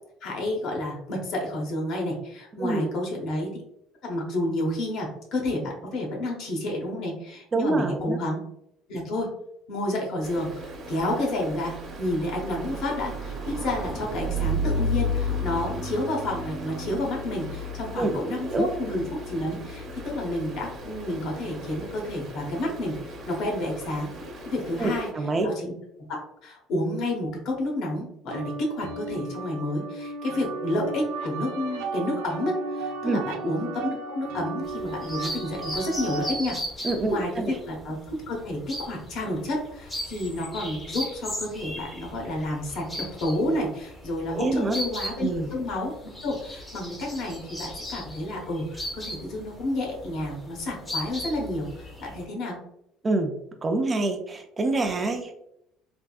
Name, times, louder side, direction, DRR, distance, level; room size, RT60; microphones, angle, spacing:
voice 1, 0.2-3.5 4.0-8.4 8.9-9.3 9.7-24.1 24.4-25.1 25.4-25.7 26.1-45.9 46.2-52.6, left 1 dB, 65° left, -1 dB, 1.0 m, -30 dB
voice 2, 2.6-2.9 7.5-8.2 18.0-18.7 24.8-25.5 33.0-33.2 36.8-37.6 44.3-44.8 45.2-45.5 53.0-53.3 53.6-55.3, right 2 dB, 25° right, 5 dB, 0.3 m, -26 dB
Stream, 10.2-25.1, left 1 dB, 40° right, 0.9 m, -34 dB
sound 1, 28.3-36.3, right 3 dB, 85° right, 0.5 m, -35 dB
sound 2, 34.6-52.3, equal, 15° left, 0.7 m, -38 dB
3.4 x 2.6 x 2.3 m, 0.79 s
cardioid pair, 135°, 0 cm